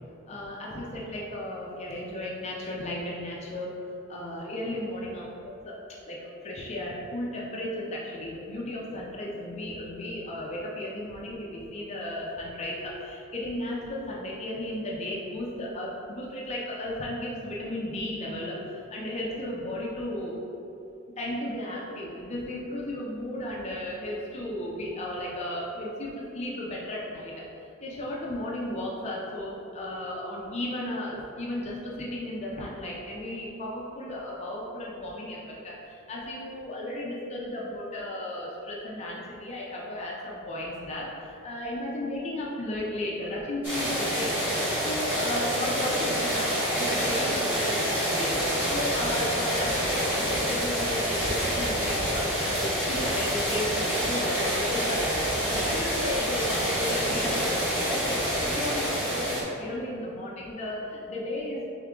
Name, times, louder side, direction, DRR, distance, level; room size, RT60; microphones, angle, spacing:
voice 1, 0.3-3.7 4.1-5.8 6.1-20.3 21.2-27.3 27.8-44.4 44.8-61.7, left 1 dB, 30° left, -4 dB, 0.5 m, -34 dB
sound 1, 43.6-59.4, equal, 10° right, 1.4 m, -27 dB
3.6 x 3.5 x 3.6 m, 2.8 s
head